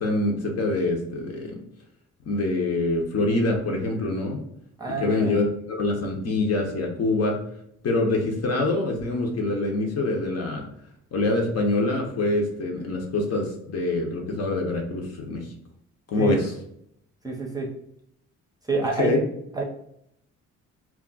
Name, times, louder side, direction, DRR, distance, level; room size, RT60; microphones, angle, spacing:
voice 1, 0.0-1.6 2.3-4.4 4.9-7.4 7.8-10.6 11.1-15.5 16.1-16.5 19.0-19.2, left 2 dB, 55° left, 1 dB, 0.8 m, -25 dB
voice 2, 4.8-5.3 16.2-16.4 17.2-17.7 18.7-19.2 19.5-19.6, right 3 dB, 10° right, -2 dB, 0.6 m, -27 dB
2.3 x 2.0 x 3.8 m, 0.73 s
cardioid pair, 90°, 30 cm